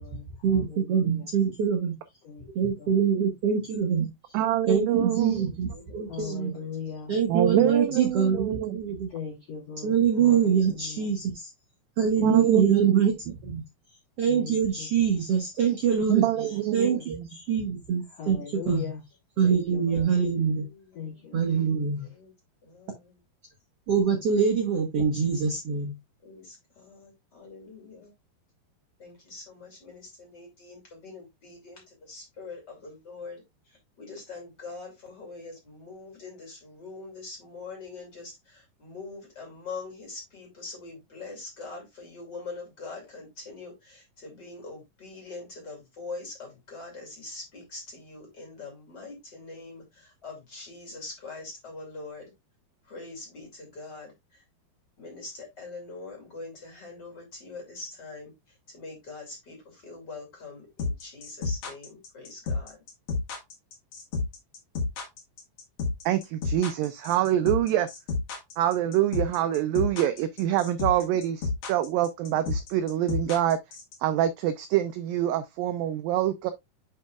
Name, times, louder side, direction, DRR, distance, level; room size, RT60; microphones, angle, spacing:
voice 1, 0.4-2.0 2.6-4.1 4.7-5.7 5.9-6.6 7.1-9.1 9.8-11.5 12.0-13.6 14.2-16.3 16.7-18.9 19.4-20.7 21.3-22.0 23.9-25.9, right 7 dB, 75° right, 1.4 m, -24 dB
voice 2, 4.3-5.5 7.3-8.8 12.2-13.0 16.1-17.3 66.1-67.9 68.6-73.6 74.0-76.5, right 12 dB, 90° right, 2.0 m, -25 dB
voice 3, 5.4-6.7 10.2-10.8 15.6-17.0 19.4-21.3 22.0-22.3 22.6-23.2 26.2-28.1 29.0-52.3 52.8-54.4 55.0-62.8, left 3 dB, 30° left, 2.3 m, -44 dB
voice 4, 6.1-7.1 7.6-8.3 9.1-11.1 12.2-13.1 14.3-14.6 15.0-15.2 16.4-16.5 16.9-17.0 18.2-19.0 19.4-20.1 21.0-21.3, left 6 dB, 75° left, 1.5 m, -39 dB
sound 1, 60.8-73.9, left 3 dB, 50° left, 2.1 m, -30 dB
10.0 x 4.4 x 2.3 m
omnidirectional pair, 4.7 m